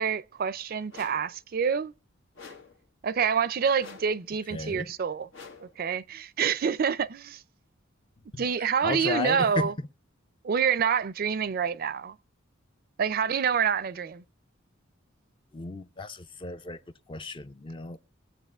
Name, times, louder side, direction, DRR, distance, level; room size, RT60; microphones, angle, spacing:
voice 1, 0.0-1.9 3.0-5.3 5.8-7.4 8.4-9.7 10.4-12.1 13.0-14.2, right 7 dB, 50° right, 0.4 m, -27 dB
sound 1, 0.9-1.4 2.3-2.8 3.8-4.3 5.3-5.8, left 5 dB, 85° left, 1.3 m, -47 dB
voice 2, 4.5-4.9 8.3-9.9 15.5-16.8 17.1-18.0, left 3 dB, 25° left, 0.4 m, -34 dB
23.0 x 8.5 x 2.4 m
head